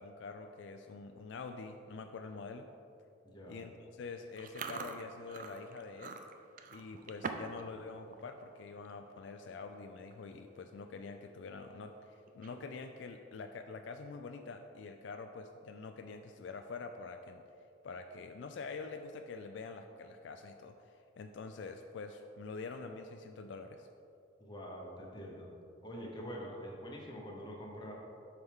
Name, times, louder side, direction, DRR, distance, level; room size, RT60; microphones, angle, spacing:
voice 1, 0.0-2.7 3.5-6.2 6.7-17.4 17.8-23.9, left 4 dB, 70° left, 6 dB, 0.3 m, -46 dB
voice 2, 3.2-3.6 24.4-25.5 25.8-27.9, equal, 20° left, -2 dB, 1.1 m, -45 dB
Chewing mastication, 4.4-7.6 7.9-8.2 8.7-8.9 9.6-9.7 10.0-10.3 10.7-10.8 12.3-12.8, right 5 dB, 45° right, 0.4 m, -44 dB
7.8 x 5.8 x 3.6 m, 2.7 s
head